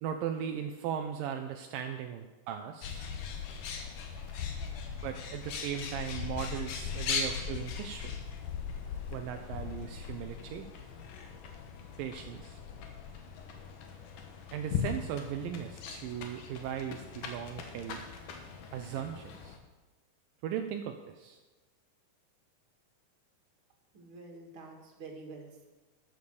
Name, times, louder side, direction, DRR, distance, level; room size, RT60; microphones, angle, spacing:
voice 1, 0.0-3.1 5.0-8.1 9.1-10.7 12.0-12.6 14.5-18.0 18.7-19.6 20.4-21.4, right 9 dB, 80° right, 5 dB, 2.3 m, -38 dB
Bird, 2.8-19.6, left 6 dB, 70° left, 2.7 m, -39 dB
voice 2, 23.9-25.7, right 3 dB, 40° right, 0 dB, 2.6 m, -48 dB
13.0 x 7.0 x 6.8 m, 1.2 s
omnidirectional pair, 4.1 m